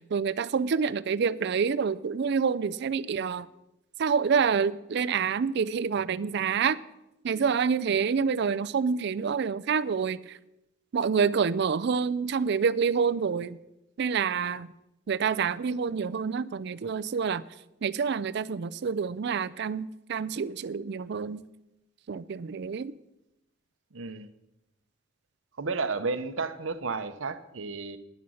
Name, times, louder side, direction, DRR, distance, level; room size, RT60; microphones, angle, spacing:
voice 1, 0.0-3.5 4.0-6.8 7.2-10.3 10.9-13.6 14.0-14.7 15.1-17.4 17.8-21.4 22.1-22.9, right 6 dB, 60° right, 0.4 m, -27 dB
voice 2, 23.9-24.3 25.6-28.0, right 4 dB, 90° right, 0.8 m, -32 dB
11.0 x 10.0 x 6.3 m
head